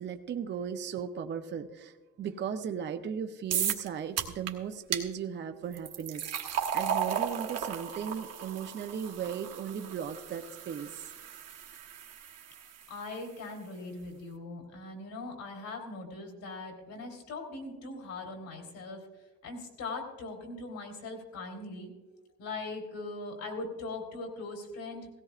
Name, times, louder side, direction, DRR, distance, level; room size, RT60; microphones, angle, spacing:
voice 1, 0.0-11.1, right 7 dB, 35° right, 7 dB, 0.6 m, -37 dB
Opening can pouring, 3.5-3.9 4.2-4.5 4.9-5.0 5.7-12.9, right 8 dB, 55° right, 1.2 m, -35 dB
voice 2, 12.9-19.0 19.4-21.9 22.4-25.1, left 3 dB, 75° left, 1 dB, 3.7 m, -40 dB
17.5 x 16.5 x 2.4 m, 1.2 s
cardioid pair, 150°, 30 cm